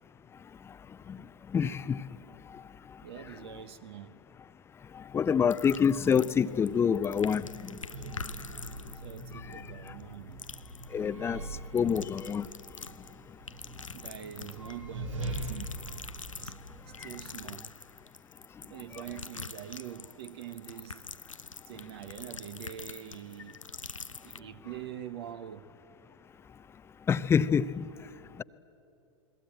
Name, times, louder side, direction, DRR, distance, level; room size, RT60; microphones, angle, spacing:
voice 1, 1.5-2.0 5.1-7.4 10.9-11.4 11.7-12.4 27.1-27.8, left 7 dB, 15° left, 0.6 m, -26 dB
voice 2, 3.0-4.2 9.0-10.4 11.8-11.9 13.9-16.0 16.4-16.5 16.8-17.7 18.6-21.1 21.6-23.6 24.2-25.7, right 10 dB, 55° right, 1.1 m, -44 dB
sound 1, 5.5-6.7 7.0-10.1 10.4-10.9 11.7-13.1 13.5-14.8 15.2-24.4, left 4 dB, 85° left, 0.6 m, -45 dB
sound 2, 6.2-18.0, right 2 dB, 80° right, 3.4 m, -43 dB
28.5 x 22.0 x 8.9 m
figure-of-eight pair, 95°, 16 cm